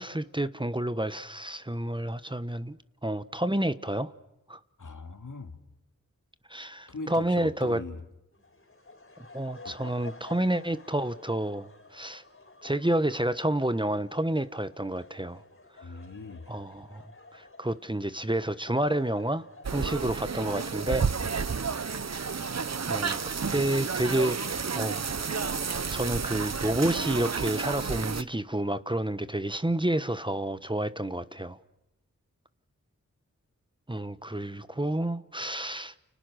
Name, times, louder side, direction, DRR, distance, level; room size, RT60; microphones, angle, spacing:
voice 1, 0.0-4.1 4.5-4.6 6.5-7.8 9.3-12.2 12.6-15.4 15.8-16.0 16.5-17.0 17.3-21.1 22.9-23.2 23.5-25.0 25.9-31.6 33.9-35.9, right 1 dB, 15° right, 1.2 m, -29 dB
voice 2, 4.8-5.6 6.9-8.0 9.6-9.7 15.8-16.4, left 3 dB, 70° left, 2.8 m, -40 dB
sound 1, 8.3-27.7, left 3 dB, 40° left, 5.1 m, -53 dB
sound 2, 19.6-28.2, right 5 dB, 55° right, 1.0 m, -31 dB
30.0 x 30.0 x 6.4 m
cardioid pair, 45°, 32 cm